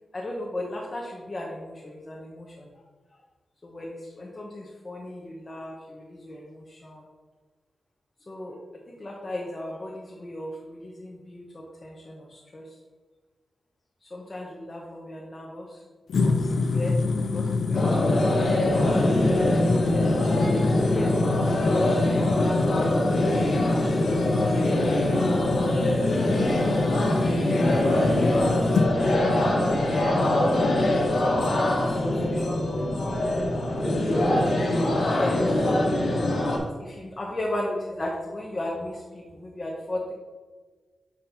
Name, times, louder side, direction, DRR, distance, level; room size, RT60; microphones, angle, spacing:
voice 1, 0.1-2.7 3.6-7.0 8.3-8.6 8.9-12.7 14.1-15.8 16.2-17.0 17.3-19.9 20.8-21.1 21.9-25.6 26.5-27.1 27.5-29.4 29.7-29.8 30.9-33.3 35.1-35.7 36.8-40.1, left 1 dB, 25° left, -2 dB, 0.7 m, -37 dB
sound 1, 16.1-28.9, left 3 dB, 75° left, 0.5 m, -27 dB
sound 2, 17.7-36.6, left 1 dB, 60° left, 1.3 m, -23 dB
7.4 x 5.7 x 2.8 m, 1.4 s
wide cardioid pair, 170°, 0 cm